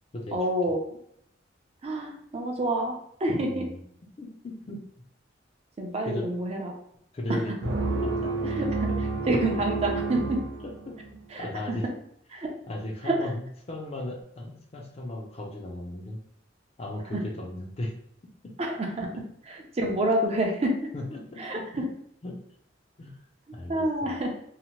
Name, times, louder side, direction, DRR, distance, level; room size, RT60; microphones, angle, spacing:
voice 1, 0.3-0.8 1.8-3.7 5.8-6.7 7.3-7.4 8.5-8.8 9.2-10.4 11.3-11.8 12.3-12.5 13.0-13.3 17.1-17.2 18.6-19.1 19.5-20.8 21.4-21.9 23.7-24.3, right 1 dB, 35° right, 1 dB, 0.5 m, -28 dB
voice 2, 3.4-3.8 4.2-4.8 6.0-6.3 7.1-7.5 8.0-8.6 8.9-9.0 10.9-11.8 12.7-16.2 16.8-17.9 18.9-19.2 20.9-21.9 22.2-22.4 23.0-23.1 23.5-24.1, left 1 dB, 35° left, 1 dB, 0.4 m, -36 dB
sound 1, 7.6-11.2, right 3 dB, 90° right, 0.5 m, -30 dB
2.8 x 2.0 x 2.9 m, 0.70 s
head